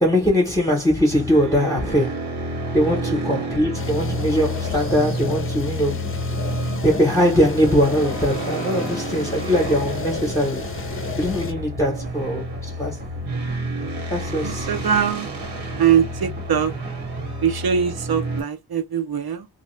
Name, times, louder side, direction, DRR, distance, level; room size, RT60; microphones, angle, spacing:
voice 1, 0.0-2.3 2.7-6.0 6.8-10.7 11.2-13.0 14.1-14.7, equal, 10° left, 0.8 m, -21 dB
sound 1, 1.1-18.4, right 1 dB, 85° right, 1.6 m, -29 dB
sound 2, 3.7-11.5, left 5 dB, 35° left, 0.5 m, -33 dB
sound 3, 9.6-17.3, right 3 dB, 25° right, 0.7 m, -40 dB
voice 2, 14.4-15.3 15.8-16.7 17.4-19.5, right 8 dB, 65° right, 0.7 m, -22 dB
2.6 x 2.3 x 3.1 m
wide cardioid pair, 145°, 39 cm